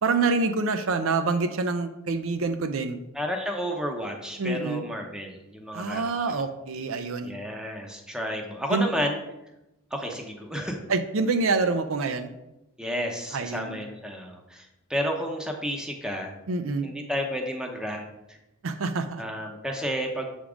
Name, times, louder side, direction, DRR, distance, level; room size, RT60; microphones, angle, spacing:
voice 1, 0.0-3.0 4.4-4.8 5.7-7.4 8.7-8.9 10.9-12.3 13.3-13.8 16.5-16.9 18.6-19.2, right 4 dB, 65° right, 8 dB, 0.5 m, -26 dB
voice 2, 3.1-6.4 7.2-9.2 9.9-10.8 12.8-16.3 16.8-18.4 19.2-20.3, equal, 5° right, 2 dB, 0.7 m, -31 dB
7.2 x 3.6 x 4.9 m, 0.93 s
head